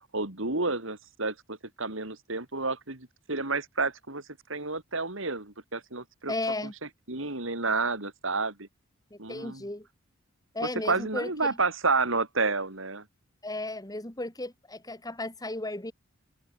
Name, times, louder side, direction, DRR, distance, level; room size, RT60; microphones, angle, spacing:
voice 1, 0.1-4.2 4.5-6.3 7.1-8.7 9.2-9.6 10.6-13.1, right 3 dB, 65° right, 3.8 m, -30 dB
voice 2, 6.3-6.7 9.1-9.9 10.5-11.6 13.4-15.9, left 2 dB, 20° left, 2.9 m, -34 dB
open air
head